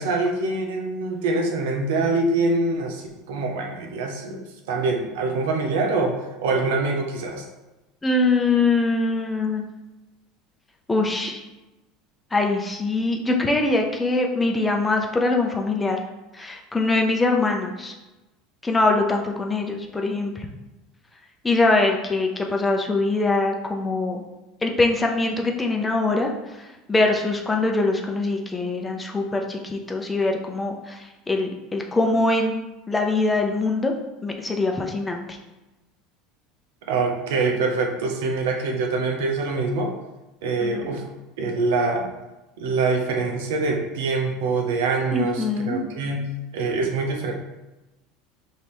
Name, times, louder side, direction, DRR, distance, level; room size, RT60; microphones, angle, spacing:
voice 1, 0.0-7.5 36.9-39.9 40.4-41.0 41.4-42.1 42.6-47.3, right 3 dB, 75° right, 2 dB, 0.7 m, -24 dB
voice 2, 8.0-9.7 10.9-11.4 12.3-16.0 16.3-17.9 18.6-20.5 21.4-24.2 24.6-32.6 32.9-33.9 34.2-35.4 40.6-40.9 45.1-45.8, left 2 dB, 15° left, 2 dB, 0.7 m, -23 dB
5.3 x 2.7 x 3.1 m, 1.0 s
hypercardioid pair, 80°, 0 cm